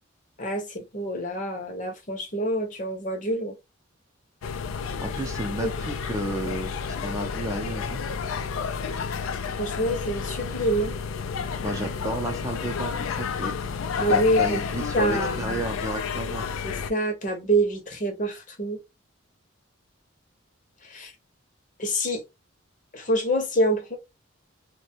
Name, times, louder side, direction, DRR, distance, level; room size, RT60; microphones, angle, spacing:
voice 1, 0.4-3.5 5.6-5.7 9.6-10.9 14.0-14.6 14.9-15.6 16.6-18.8 20.9-21.1 21.8-22.2 22.9-24.0, right 1 dB, 40° left, 0.7 m, -26 dB
sound 1, 4.4-16.9, left 6 dB, 90° left, 0.4 m, -30 dB
voice 2, 5.0-8.0 10.7-10.8 11.6-13.5 14.1-16.5, right 1 dB, 15° right, 0.5 m, -32 dB
2.6 x 2.2 x 2.8 m
head